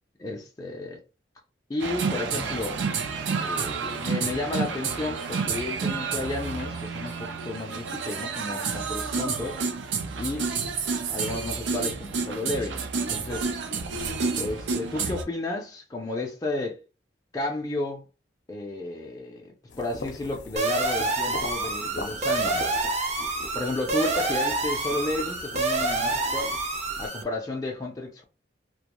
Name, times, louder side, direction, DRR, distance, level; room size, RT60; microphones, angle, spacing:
voice 1, 0.2-1.0 1.7-2.8 3.4-9.6 10.2-10.5 11.1-13.5 14.4-16.8 17.3-18.0 18.5-22.8 23.5-26.6 27.0-28.2, left 2 dB, 20° left, 0.4 m, -32 dB
sound 1, 1.8-15.2, right 5 dB, 85° right, 0.5 m, -30 dB
sound 2, 19.7-27.1, left 3 dB, 70° left, 0.5 m, -41 dB
sound 3, 20.6-27.2, right 3 dB, 40° right, 0.5 m, -27 dB
2.3 x 2.1 x 2.9 m
head